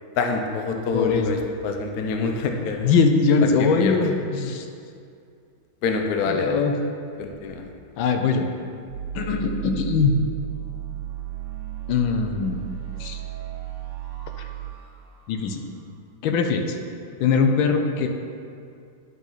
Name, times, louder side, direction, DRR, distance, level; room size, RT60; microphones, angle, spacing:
voice 1, 0.2-2.9 3.6-4.0 5.8-6.6 7.2-7.6, left 4 dB, 65° left, 3 dB, 1.0 m, -26 dB
voice 2, 0.9-1.3 2.8-4.7 6.3-6.8 8.0-8.5 9.1-10.1 11.9-12.6 13.0-13.2 15.3-15.6 16.2-16.8 17.2-18.1, left 5 dB, 85° left, 4 dB, 1.4 m, -21 dB
sound 1, 8.9-15.8, right 13 dB, 70° right, 1.7 m, -34 dB
11.0 x 4.0 x 4.0 m, 2.4 s
omnidirectional pair, 2.1 m